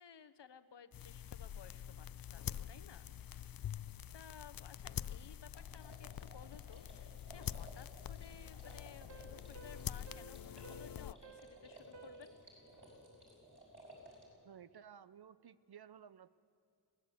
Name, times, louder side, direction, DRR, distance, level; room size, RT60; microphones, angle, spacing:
voice 1, 0.0-3.1 3.5-3.8 4.1-12.4, left 7 dB, 70° left, 13 dB, 0.9 m, -58 dB
sound 1, 0.9-11.1, left 10 dB, 55° left, 0.5 m, -46 dB
sound 2, 5.5-14.3, equal, 25° right, 5.9 m, -58 dB
sound 3, 8.4-13.3, right 4 dB, 75° right, 1.0 m, -58 dB
voice 2, 14.4-16.3, right 8 dB, 60° right, 15 dB, 0.6 m, -56 dB
21.5 x 17.0 x 7.8 m, 2.3 s
wide cardioid pair, 75°, 43 cm